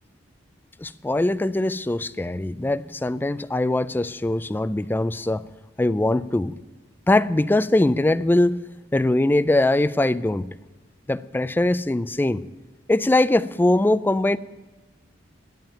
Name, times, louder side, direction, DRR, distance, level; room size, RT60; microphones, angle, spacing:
voice 1, 0.8-5.5 5.8-6.5 7.1-8.6 8.9-10.5 11.1-12.4 12.9-14.4, left 2 dB, 10° left, 14 dB, 0.3 m, -21 dB
11.5 x 7.3 x 8.9 m, 1.2 s
head